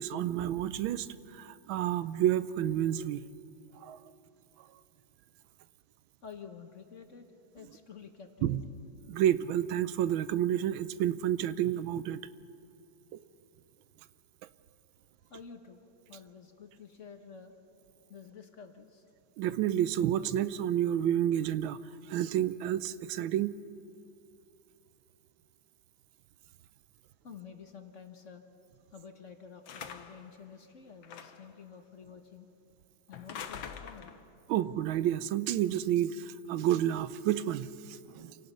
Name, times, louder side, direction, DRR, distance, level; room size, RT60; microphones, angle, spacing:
voice 1, 0.0-3.2 3.7-4.0 8.4-8.6 9.1-12.2 19.4-21.8 22.0-23.5 34.5-38.4, right 11 dB, 85° right, 15 dB, 1.4 m, -30 dB
voice 2, 6.2-7.3 7.5-8.8 15.2-17.5 18.1-19.0 27.2-28.4 28.9-32.5 33.1-34.2, left 6 dB, 45° left, 6 dB, 1.3 m, -50 dB
sound 1, 29.7-30.3 31.0-31.5 33.1-34.3, left 7 dB, 80° left, 1.8 m, -44 dB
27.5 x 18.0 x 5.6 m, 3.0 s
omnidirectional pair, 2.1 m